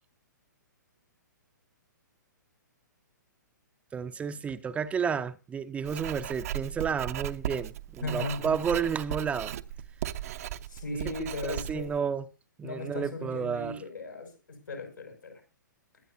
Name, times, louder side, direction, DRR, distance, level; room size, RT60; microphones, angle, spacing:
voice 1, 3.9-9.5 11.1-12.2 12.6-13.8, right 6 dB, 10° right, 0.6 m, -31 dB
Writing, 5.8-12.0, right 11 dB, 50° right, 0.7 m, -37 dB
voice 2, 8.0-8.6 10.7-11.9 12.6-15.4, left 2 dB, 80° left, 5.7 m, -37 dB
22.0 x 8.3 x 2.6 m
figure-of-eight pair, 120°, 10 cm